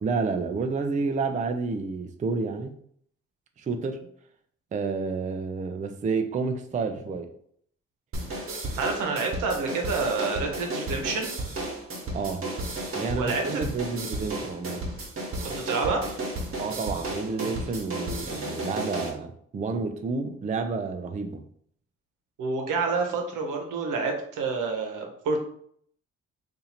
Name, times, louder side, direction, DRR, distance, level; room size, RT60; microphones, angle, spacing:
voice 1, 0.0-2.8 3.6-4.0 4.7-7.3 12.1-12.4 13.0-14.8 16.5-21.4, right 4 dB, 25° right, 6 dB, 0.4 m, -30 dB
sound 1, 8.1-19.1, right 1 dB, 45° right, 1.2 m, -33 dB
voice 2, 8.3-11.3 13.1-13.6 15.4-16.1 22.4-25.4, right 4 dB, 80° right, 2 dB, 0.9 m, -28 dB
2.7 x 2.6 x 4.2 m, 0.64 s
cardioid pair, 80°, 31 cm